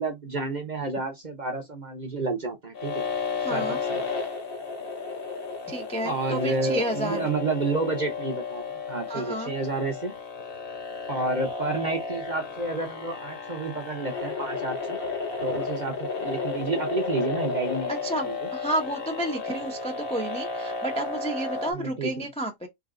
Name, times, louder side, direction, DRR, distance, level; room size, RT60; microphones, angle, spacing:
voice 1, 0.0-3.0 3.5-4.0 6.0-10.1 11.1-15.0 15.4-18.5 21.7-22.3, right 3 dB, 35° right, 0.9 m, -30 dB
sound 1, 2.7-21.7, left 4 dB, 40° left, 1.0 m, -33 dB
voice 2, 3.4-3.8 5.7-7.3 9.1-9.5 18.0-22.7, right 1 dB, 10° left, 0.4 m, -31 dB
3.9 x 2.4 x 3.7 m
omnidirectional pair, 1.8 m